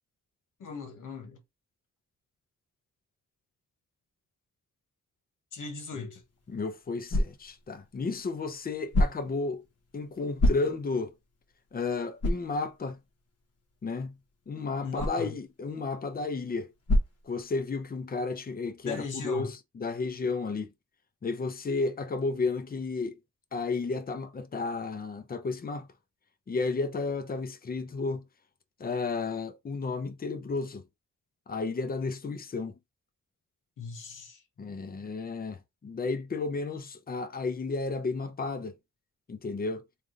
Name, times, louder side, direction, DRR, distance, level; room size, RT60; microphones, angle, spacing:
voice 1, 0.6-1.4 5.5-6.2 14.8-15.3 18.9-19.5 33.8-34.4, left 4 dB, 75° left, 1.1 m, -38 dB
sound 1, 6.2-18.0, left 1 dB, 50° left, 1.1 m, -33 dB
voice 2, 6.5-9.6 9.9-11.1 11.7-13.0 13.8-14.1 14.5-16.7 17.2-20.7 21.2-23.2 23.5-25.9 26.5-28.2 28.8-30.8 31.5-32.7 34.6-38.7 39.3-39.8, left 3 dB, 30° left, 0.6 m, -32 dB
3.4 x 2.4 x 3.7 m
wide cardioid pair, 130°, 31 cm